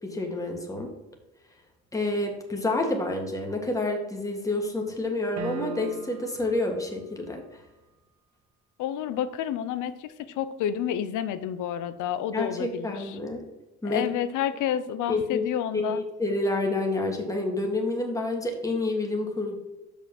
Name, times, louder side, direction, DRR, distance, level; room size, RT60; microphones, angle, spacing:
voice 1, 0.0-0.9 1.9-7.4 12.3-13.4 13.8-14.1 15.1-15.4 15.7-19.6, left 2 dB, 10° left, 1 dB, 1.7 m, -28 dB
sound 1, 5.4-6.4, right 4 dB, 60° right, 1.0 m, -37 dB
voice 2, 8.8-13.2 13.8-16.0, left 10 dB, 90° left, 13 dB, 0.6 m, -30 dB
6.0 x 5.6 x 5.9 m, 1.0 s
cardioid pair, 90°, 30 cm